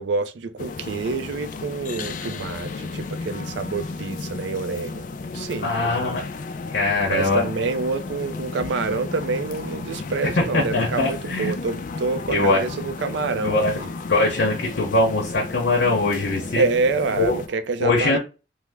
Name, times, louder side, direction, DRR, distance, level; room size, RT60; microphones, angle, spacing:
voice 1, 0.0-5.0 5.3-6.1 7.0-13.9 16.6-18.2, right 4 dB, 70° right, 0.4 m, -27 dB
sound 1, 0.6-17.5, left 3 dB, 45° left, 0.3 m, -33 dB
voice 2, 5.6-6.2 6.7-7.4 10.3-11.6 12.3-12.7 13.4-13.8 14.1-16.7 17.2-17.4 17.8-18.2, left 2 dB, 70° left, 0.8 m, -21 dB
3.2 x 2.0 x 3.4 m
head